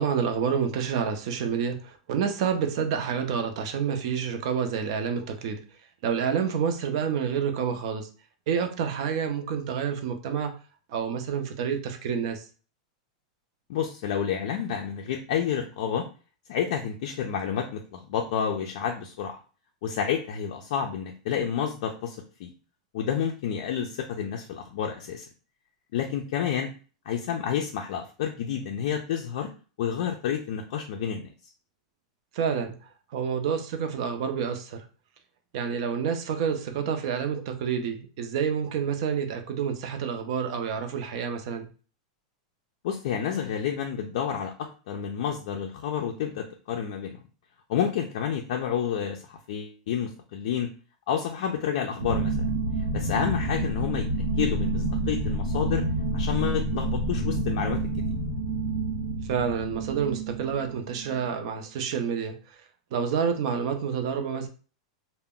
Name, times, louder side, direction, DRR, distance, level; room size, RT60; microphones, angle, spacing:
voice 1, 0.0-5.6 6.0-8.1 8.5-10.5 10.9-12.5 32.3-32.7 33.1-34.8 35.5-41.7 59.3-62.3 62.9-64.5, right 7 dB, 55° right, 6 dB, 0.5 m, -28 dB
voice 2, 13.7-16.0 16.5-19.4 19.8-22.5 22.9-25.3 25.9-26.7 27.1-29.5 29.8-31.3 42.8-44.5 44.9-47.2 47.7-50.7 51.1-52.4 52.9-54.1 54.4-55.8 56.1-57.8, left 8 dB, 60° left, 2 dB, 0.4 m, -29 dB
sound 1, 52.0-61.5, right 2 dB, 90° right, 0.7 m, -29 dB
2.2 x 2.0 x 3.6 m, 0.37 s
supercardioid pair, 155°, 4 cm